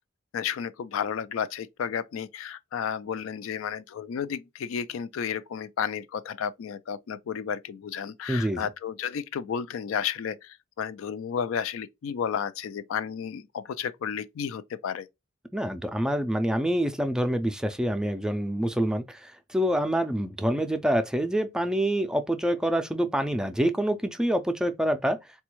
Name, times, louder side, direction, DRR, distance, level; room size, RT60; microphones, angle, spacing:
voice 1, 0.3-15.1, left 7 dB, 80° left, 0.3 m, -32 dB
voice 2, 8.3-8.6 15.5-25.2, equal, 5° right, 0.3 m, -26 dB
4.1 x 2.2 x 3.0 m
head